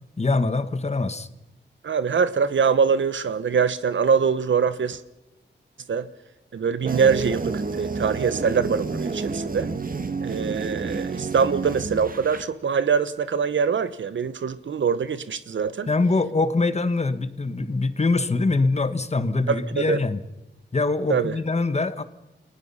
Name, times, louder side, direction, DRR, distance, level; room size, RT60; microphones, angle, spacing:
voice 1, 0.2-1.3 15.9-20.2 20.7-22.0, left 3 dB, 35° left, 1.3 m, -23 dB
voice 2, 1.8-5.0 5.9-6.1 6.5-9.7 10.2-15.9 19.5-20.0 21.1-21.3, right 6 dB, 80° right, 1.1 m, -23 dB
sound 1, 6.8-12.4, right 4 dB, 45° right, 1.6 m, -29 dB
29.5 x 18.5 x 5.6 m
wide cardioid pair, 95°, 19 cm